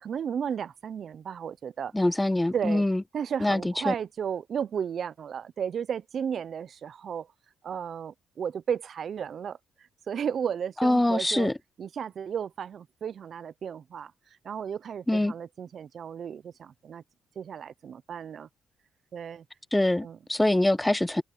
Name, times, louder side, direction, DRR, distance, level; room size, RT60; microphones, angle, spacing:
voice 1, 0.0-1.9 2.5-2.9 3.1-7.3 7.6-9.6 10.1-11.5 11.8-14.1 14.4-17.0 17.4-18.5 19.1-19.4 20.0-20.2, right 7 dB, 55° right, 0.7 m, -34 dB
voice 2, 1.9-3.0 3.4-3.9 10.8-11.5 15.1-15.3 19.7-21.2, left 1 dB, 10° left, 0.9 m, -24 dB
cardioid pair, 90°, 0 cm